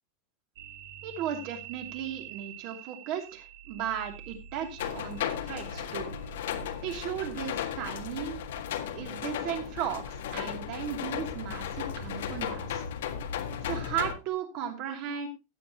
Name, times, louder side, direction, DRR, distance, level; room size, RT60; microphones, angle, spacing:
sound 1, 0.6-9.1, right 6 dB, 60° right, 2.1 m, -47 dB
voice 1, 1.0-6.2 6.8-8.4 8.9-12.8 13.6-15.3, right 9 dB, 40° right, 5 dB, 2.7 m, -36 dB
sound 2, 4.8-14.1, left 8 dB, 80° left, 1.7 m, -35 dB
16.0 x 8.4 x 2.9 m, 0.25 s
supercardioid pair, 175°, 0 cm